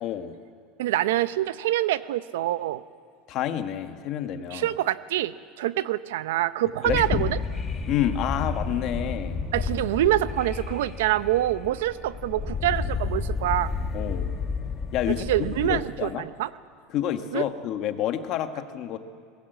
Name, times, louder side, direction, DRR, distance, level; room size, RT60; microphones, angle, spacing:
voice 1, 0.0-0.3 3.3-4.7 6.8-7.3 7.8-9.5 13.9-14.3 14.9-16.2 16.9-19.0, left 10 dB, 40° left, 8 dB, 1.4 m, -29 dB
voice 2, 0.8-2.8 4.5-7.4 9.5-13.7 15.3-16.5 17.3-17.5, right 14 dB, 90° right, 15 dB, 0.7 m, -26 dB
sound 1, 6.8-15.8, left 4 dB, 20° left, 1.6 m, -31 dB
23.0 x 20.5 x 8.1 m, 2.3 s
supercardioid pair, 160°, 0 cm